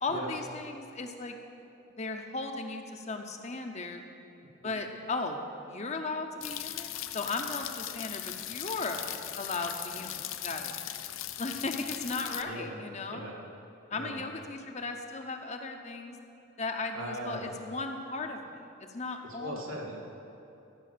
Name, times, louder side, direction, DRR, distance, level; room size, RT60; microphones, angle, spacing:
voice 1, 0.0-1.4 2.0-4.0 4.6-5.4 5.7-9.0 9.4-10.7 11.4-13.3 13.9-16.2 16.6-19.6, left 3 dB, 35° left, 5 dB, 0.7 m, -36 dB
sound 1, 6.4-12.4, left 12 dB, 75° left, 0.5 m, -39 dB
voice 2, 12.4-12.8 13.1-13.3 13.9-14.2 16.9-17.5 19.4-20.0, right 1 dB, 85° right, -2 dB, 2.1 m, -39 dB
14.5 x 5.6 x 6.7 m, 2.9 s
head